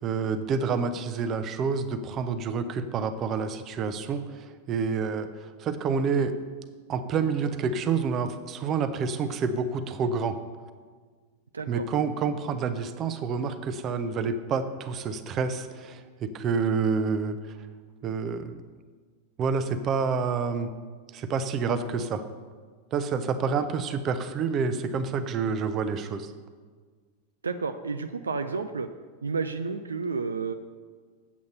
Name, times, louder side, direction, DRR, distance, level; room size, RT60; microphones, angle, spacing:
voice 1, 0.0-6.4 6.9-10.4 11.7-17.6 18.0-18.6 19.4-20.7 21.1-22.2 22.9-26.3, right 5 dB, 30° right, 10 dB, 0.7 m, -28 dB
voice 2, 11.5-11.8 27.4-28.9 29.2-30.5, right 4 dB, 75° right, 9 dB, 0.4 m, -31 dB
8.4 x 7.9 x 5.4 m, 1.5 s
figure-of-eight pair, 90°, 0 cm